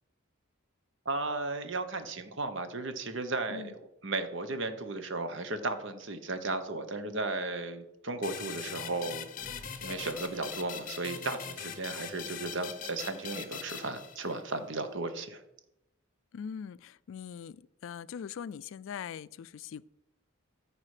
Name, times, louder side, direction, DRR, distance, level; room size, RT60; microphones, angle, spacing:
voice 1, 1.0-9.3 9.8-15.4, right 3 dB, 60° right, 1.0 m, -35 dB
sound 1, 8.2-14.6, left 7 dB, 40° left, 0.8 m, -42 dB
sound 2, 9.4-12.1 12.5-12.6 13.0-13.1 13.5-13.6, left 1 dB, 10° left, 0.6 m, -54 dB
voice 2, 16.3-19.8, left 7 dB, 65° left, 0.3 m, -42 dB
14.0 x 4.9 x 4.9 m
head